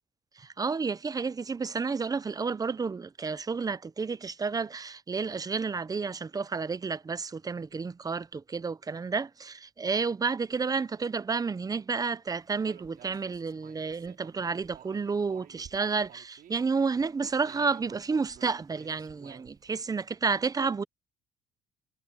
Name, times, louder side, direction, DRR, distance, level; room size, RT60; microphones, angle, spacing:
voice 1, 0.4-20.8, right 5 dB, 20° right, 0.7 m, -31 dB
Human voice, 12.7-16.5 17.0-19.7, right 10 dB, 60° right, 4.8 m, -53 dB
cardioid pair, 110°, 17 cm